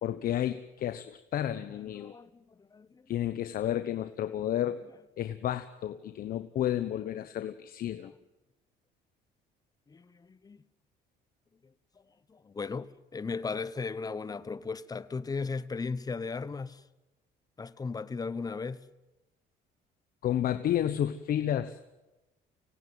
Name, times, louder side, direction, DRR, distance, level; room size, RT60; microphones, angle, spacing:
voice 1, 0.0-2.1 3.1-4.8 5.2-8.1 20.2-21.8, left 11 dB, 60° left, 1.1 m, -31 dB
voice 2, 2.0-3.1 7.4-7.5 9.9-10.6 12.3-16.8 17.6-18.9, left 4 dB, 20° left, 1.0 m, -36 dB
25.5 x 17.5 x 9.5 m
cardioid pair, 110°, 17 cm